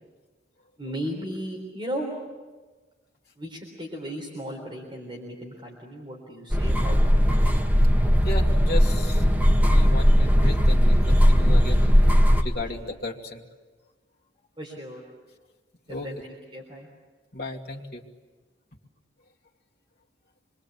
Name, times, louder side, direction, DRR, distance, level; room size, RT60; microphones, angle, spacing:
voice 1, 0.8-2.1 3.4-7.1 14.6-15.0 15.9-16.2 16.5-16.9, equal, 25° right, -1 dB, 3.9 m, -35 dB
sound 1, 6.5-12.4, equal, 10° right, 1.6 m, -18 dB
voice 2, 8.2-9.2 9.6-11.9 12.4-13.4 15.9-16.1 17.3-18.0, left 1 dB, 55° left, 0 dB, 2.4 m, -35 dB
26.5 x 22.5 x 8.4 m, 1.3 s
head